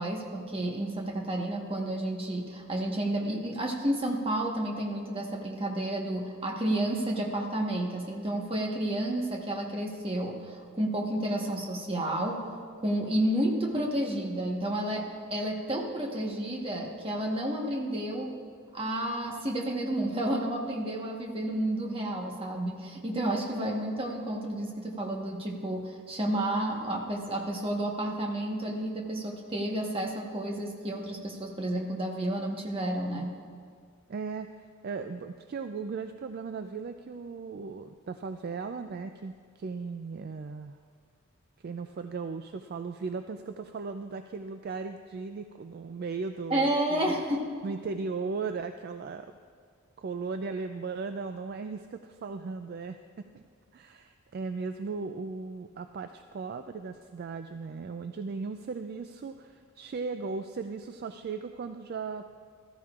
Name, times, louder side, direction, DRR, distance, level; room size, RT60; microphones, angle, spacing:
voice 1, 0.0-18.3 18.7-33.4 46.5-47.5, right 1 dB, 25° right, 0 dB, 1.2 m, -31 dB
voice 2, 34.1-34.5 34.8-40.8 41.6-47.1 47.6-49.3 50.0-53.4 53.7-62.2, right 4 dB, 45° right, 8 dB, 0.3 m, -37 dB
14.5 x 13.5 x 2.4 m, 2.1 s
head